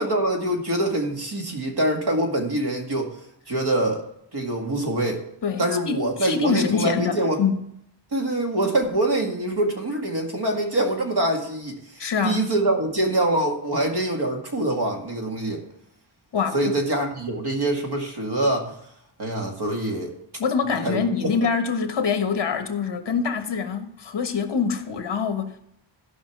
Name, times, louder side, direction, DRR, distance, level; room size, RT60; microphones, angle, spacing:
voice 1, 0.0-3.2 3.5-4.0 4.3-5.2 5.6-7.4 8.1-15.6 16.5-18.7 19.2-20.2 20.8-21.3, right 1 dB, 50° right, 2.1 m, -24 dB
voice 2, 5.4-7.6 12.0-12.5 16.3-16.6 20.4-25.6, left 5 dB, 60° left, 1.4 m, -25 dB
13.5 x 5.5 x 6.0 m
wide cardioid pair, 165°, 49 cm